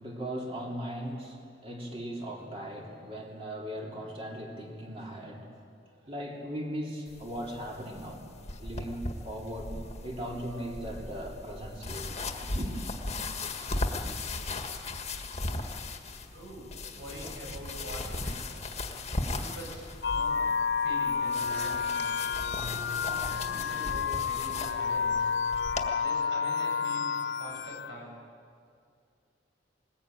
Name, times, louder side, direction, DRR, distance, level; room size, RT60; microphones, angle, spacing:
voice 1, 0.0-5.6 6.0-8.2 8.6-12.1 12.4-12.7, equal, 30° right, -1 dB, 3.1 m, -38 dB
sound 1, 7.1-25.9, left 2 dB, 35° left, 1.7 m, -37 dB
voice 2, 16.3-16.7 17.0-18.6 19.3-20.4 20.8-22.1 22.9-25.3 26.0-28.2, right 1 dB, 75° right, -1 dB, 7.8 m, -44 dB
sound 2, 20.0-28.0, left 5 dB, 70° left, 0.6 m, -30 dB
21.0 x 19.5 x 9.0 m, 2.3 s
head